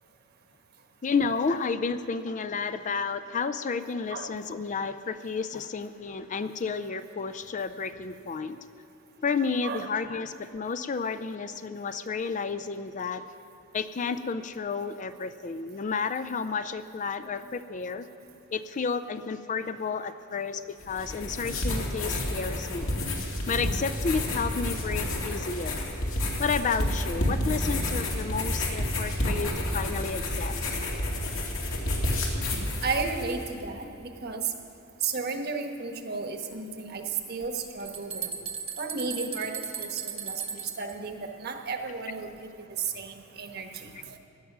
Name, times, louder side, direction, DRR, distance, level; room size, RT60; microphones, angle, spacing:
voice 1, 1.0-8.6 9.2-13.2 13.7-18.1 18.5-22.9 23.5-25.8 26.4-30.6, left 5 dB, 35° left, 11 dB, 0.4 m, -31 dB
sound 1, 20.8-33.5, left 1 dB, 75° left, 2.4 m, -30 dB
voice 2, 32.8-34.5 35.0-38.4 38.8-44.2, right 4 dB, 50° right, 5 dB, 1.3 m, -33 dB
sound 2, 37.4-37.5 37.8-40.9, right 7 dB, 30° right, 0.8 m, -36 dB
17.0 x 10.5 x 6.1 m, 3.0 s
head